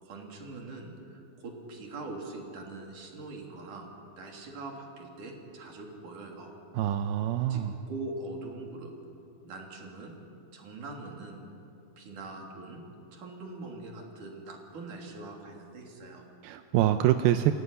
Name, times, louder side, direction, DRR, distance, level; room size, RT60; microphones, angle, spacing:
voice 1, 0.0-3.9 4.2-6.5 7.5-8.9 9.4-10.1 10.5-11.4 12.0-12.8 13.1-16.2, right 2 dB, 55° right, 1 dB, 4.7 m, -42 dB
voice 2, 6.7-7.7 16.4-17.5, right 12 dB, 85° right, 8 dB, 2.6 m, -25 dB
29.0 x 16.5 x 9.9 m, 2.8 s
omnidirectional pair, 4.3 m